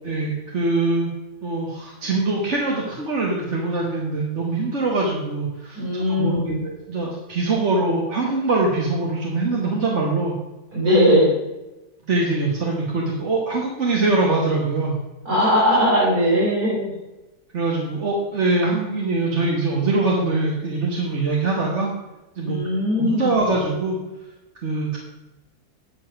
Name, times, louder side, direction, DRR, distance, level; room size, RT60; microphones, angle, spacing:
voice 1, 0.0-1.1 1.4-10.3 12.0-15.0 17.5-21.9 22.4-22.6 23.0-24.0 24.6-25.0, right 3 dB, 50° right, -2 dB, 1.6 m, -23 dB
voice 2, 5.7-6.6 10.7-11.3 15.2-16.9 22.4-23.3, equal, 75° right, -8 dB, 4.6 m, -19 dB
9.0 x 7.2 x 5.8 m, 1.0 s
omnidirectional pair, 1.6 m